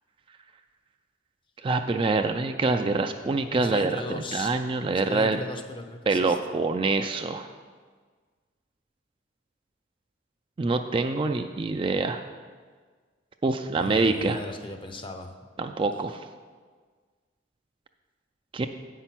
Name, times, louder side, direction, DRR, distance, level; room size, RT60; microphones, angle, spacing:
voice 1, 1.6-5.4 6.1-7.5 10.6-12.2 13.4-14.4 15.6-16.2 18.5-18.7, right 3 dB, 25° right, 6 dB, 0.3 m, -25 dB
voice 2, 3.5-4.6 4.9-6.6 13.7-15.3, left 2 dB, 25° left, 6 dB, 0.6 m, -37 dB
7.9 x 5.6 x 5.9 m, 1.5 s
head